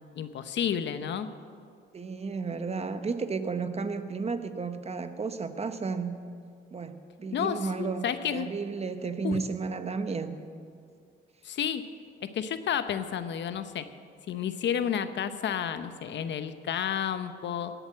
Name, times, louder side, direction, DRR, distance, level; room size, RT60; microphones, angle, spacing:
voice 1, 0.2-1.3 7.3-8.5 9.2-9.4 11.4-11.8 12.3-13.8 14.3-17.7, left 8 dB, 65° left, 11 dB, 0.9 m, -31 dB
voice 2, 1.9-6.1 6.7-8.1 8.3-10.4, right 4 dB, 30° right, 10 dB, 0.9 m, -33 dB
17.5 x 8.0 x 7.6 m, 2.3 s
cardioid pair, 90°, 20 cm